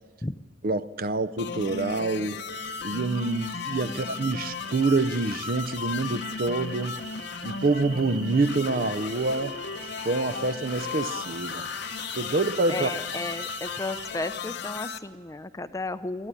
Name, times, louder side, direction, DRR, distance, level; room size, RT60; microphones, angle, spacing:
voice 1, 0.6-2.4 2.8-7.0 7.4-9.6 10.0-11.7 12.1-12.9, right 3 dB, 50° right, 0.7 m, -26 dB
sound 1, 1.4-15.0, left 5 dB, 60° left, 0.8 m, -35 dB
sound 2, 2.5-14.0, right 4 dB, 80° right, 4.4 m, -43 dB
voice 2, 3.8-4.4 12.7-16.3, left 2 dB, 15° left, 0.5 m, -34 dB
23.0 x 14.0 x 9.8 m
head